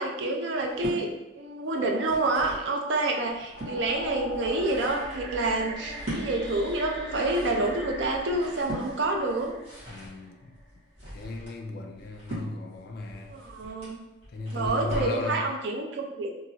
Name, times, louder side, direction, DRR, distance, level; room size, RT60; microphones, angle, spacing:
voice 1, 0.0-9.5 13.3-14.0 14.5-16.3, right 2 dB, 65° right, 2 dB, 0.4 m, -28 dB
sound 1, 0.6-1.0 1.8-2.7 3.1-3.8 4.4-15.2, right 1 dB, 30° right, 1.2 m, -41 dB
sound 2, 3.5-10.6, left 1 dB, 10° left, 1.4 m, -40 dB
voice 2, 9.9-10.5 11.1-13.4 14.3-15.4, left 2 dB, 55° left, 3 dB, 0.4 m, -35 dB
2.8 x 2.5 x 2.7 m, 0.98 s
head